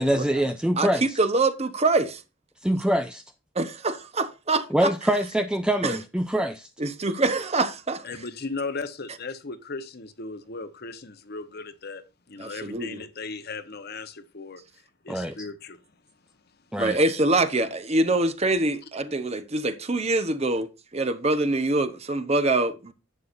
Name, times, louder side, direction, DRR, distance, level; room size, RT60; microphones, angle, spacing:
voice 1, 0.0-1.2 2.6-3.2 4.7-6.7 15.1-15.5 16.7-17.0, right 1 dB, 5° right, 0.5 m, -24 dB
voice 2, 0.8-2.2 3.5-4.9 5.8-6.0 6.8-8.0 12.4-13.0 16.8-22.9, right 2 dB, 30° right, 1.0 m, -24 dB
voice 3, 8.0-15.8, left 3 dB, 55° left, 1.0 m, -37 dB
11.0 x 8.4 x 2.6 m
head